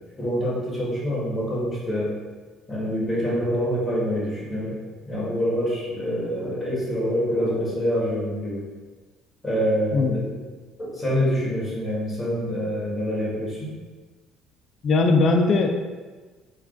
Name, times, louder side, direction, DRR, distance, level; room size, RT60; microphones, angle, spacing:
voice 1, 0.2-2.1 2.7-4.7 5.1-8.6 9.4-10.2 10.8-13.7, equal, 20° left, -6 dB, 1.2 m, -26 dB
voice 2, 9.9-10.3 14.8-15.8, left 3 dB, 50° left, 4 dB, 0.3 m, -20 dB
3.2 x 2.3 x 2.4 m, 1.4 s
supercardioid pair, 90°, 0 cm